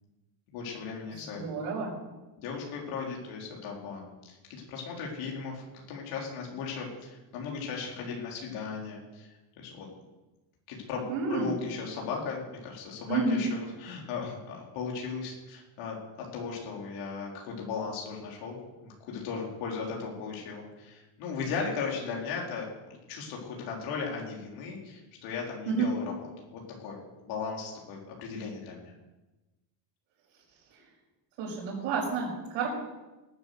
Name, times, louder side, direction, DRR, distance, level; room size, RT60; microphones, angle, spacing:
voice 1, 0.5-1.4 2.4-9.3 9.6-9.9 10.7-22.7 23.1-26.1 26.5-28.9, left 5 dB, 80° left, -1 dB, 4.0 m, -37 dB
voice 2, 1.1-1.9 11.1-11.5 13.1-13.4 25.7-25.9 31.4-32.7, right 4 dB, 70° right, -6 dB, 6.0 m, -30 dB
19.5 x 8.1 x 6.6 m, 1.1 s
cardioid pair, 140°, 47 cm